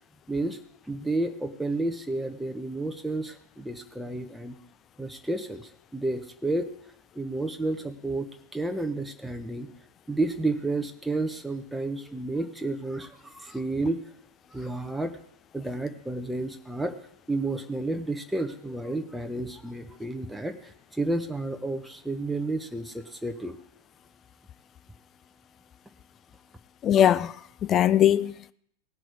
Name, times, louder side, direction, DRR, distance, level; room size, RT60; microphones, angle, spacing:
voice 1, 0.3-0.6 0.9-4.6 5.0-6.7 7.2-9.7 10.1-14.0 14.5-15.2 15.5-17.0 17.3-23.6, right 2 dB, 5° right, 0.9 m, -31 dB
voice 2, 26.8-28.5, left 10 dB, 30° left, 0.4 m, -21 dB
18.0 x 6.0 x 4.7 m
figure-of-eight pair, 90°, 0 cm